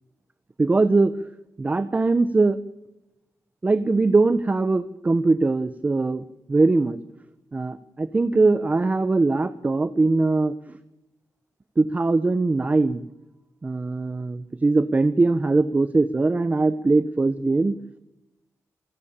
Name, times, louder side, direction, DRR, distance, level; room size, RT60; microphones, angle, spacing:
voice 1, 0.6-1.1 1.6-2.6 3.6-7.0 7.5-10.8 11.8-13.0 13.6-17.8, right 3 dB, 25° right, 13 dB, 0.9 m, -21 dB
29.0 x 12.0 x 8.8 m, 0.97 s
wide cardioid pair, 125°, 6 cm